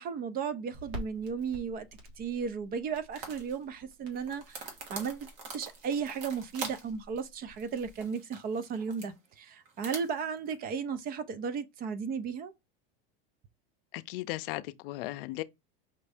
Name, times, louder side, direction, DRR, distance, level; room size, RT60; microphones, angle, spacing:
voice 1, 0.0-1.9 2.2-4.6 4.9-12.5, right 6 dB, 30° right, 0.5 m, -35 dB
Crackle, 0.7-8.0, left 1 dB, 80° right, 1.8 m, -49 dB
sound 1, 3.1-3.6 4.1-6.9 7.2-7.3 7.6-9.1 9.7-10.6, right 4 dB, 65° right, 1.7 m, -44 dB
voice 2, 13.9-15.4, left 18 dB, 75° left, 0.5 m, -36 dB
5.2 x 2.6 x 3.4 m
supercardioid pair, 135°, 29 cm